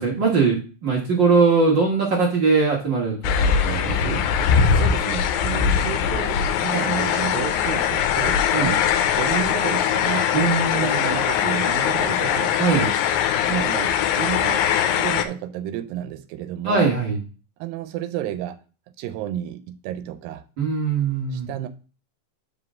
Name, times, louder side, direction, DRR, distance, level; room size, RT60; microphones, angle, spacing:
voice 1, 0.0-4.2 8.5-8.8 10.3-11.0 12.6-12.9 16.6-17.2 20.6-21.5, right 4 dB, 55° right, 1.2 m, -21 dB
sound 1, 3.2-15.3, left 8 dB, 90° left, 2.4 m, -21 dB
voice 2, 4.4-8.9 9.2-10.3 10.7-12.6 13.4-16.9 17.6-18.6 19.0-20.4 21.3-21.7, right 11 dB, 85° right, 2.3 m, -31 dB
5.3 x 4.9 x 6.0 m
omnidirectional pair, 4.0 m